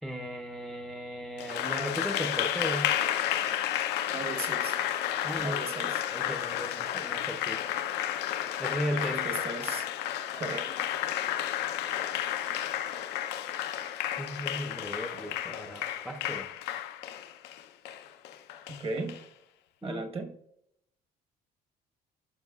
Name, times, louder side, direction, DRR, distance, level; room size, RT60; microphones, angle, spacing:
voice 1, 0.0-2.9 5.2-5.6 6.1-7.6 8.6-9.2 14.2-16.5 19.8-20.0, equal, ahead, 3 dB, 0.7 m, -36 dB
Applause, 1.4-19.2, left 11 dB, 85° left, 0.7 m, -32 dB
voice 2, 4.1-4.8 5.4-6.0 8.9-9.9 10.4-10.8 18.7-19.2 19.8-20.4, right 3 dB, 35° right, 5 dB, 1.2 m, -37 dB
14.5 x 5.6 x 2.4 m, 0.76 s
cardioid pair, 110°, 17 cm